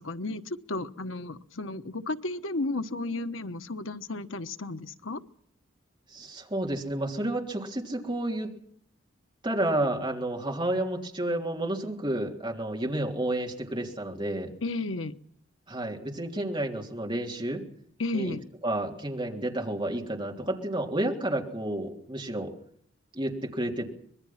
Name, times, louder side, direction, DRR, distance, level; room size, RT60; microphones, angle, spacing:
voice 1, 0.0-5.2 14.6-15.2 18.0-18.4, left 2 dB, 85° left, 9 dB, 1.2 m, -33 dB
voice 2, 6.1-8.5 9.4-14.5 15.7-17.6 18.1-18.4 18.6-22.5 23.1-23.9, right 1 dB, 25° right, 1 dB, 3.3 m, -30 dB
25.5 x 21.5 x 5.9 m, 0.64 s
head